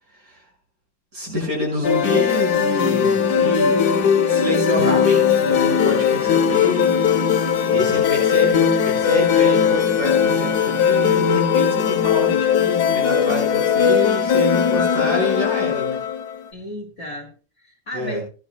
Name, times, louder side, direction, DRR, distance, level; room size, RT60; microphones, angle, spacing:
voice 1, 1.1-3.8 4.3-16.0 17.9-18.2, left 1 dB, 50° right, -2 dB, 6.6 m, -27 dB
sound 1, 1.8-16.4, left 7 dB, 65° left, 1.4 m, -19 dB
voice 2, 16.5-18.2, left 1 dB, 40° left, -2 dB, 2.1 m, -34 dB
18.0 x 10.0 x 2.2 m, 0.36 s
omnidirectional pair, 1.9 m